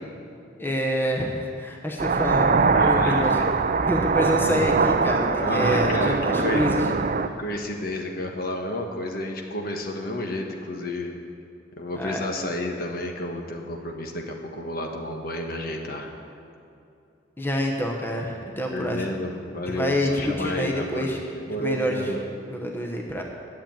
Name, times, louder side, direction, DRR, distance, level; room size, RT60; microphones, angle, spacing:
voice 1, 0.6-3.3 3.9-6.8 11.9-12.2 17.4-19.1 19.7-21.2 21.6-22.0 22.5-23.2, equal, 10° left, 1 dB, 1.1 m, -27 dB
sound 1, 2.0-7.3, right 4 dB, 45° right, 0.5 m, -22 dB
voice 2, 2.7-3.5 5.4-6.7 7.4-11.1 11.8-16.1 18.7-22.2, left 1 dB, 50° left, 2 dB, 1.3 m, -31 dB
11.0 x 7.7 x 8.9 m, 2.7 s
head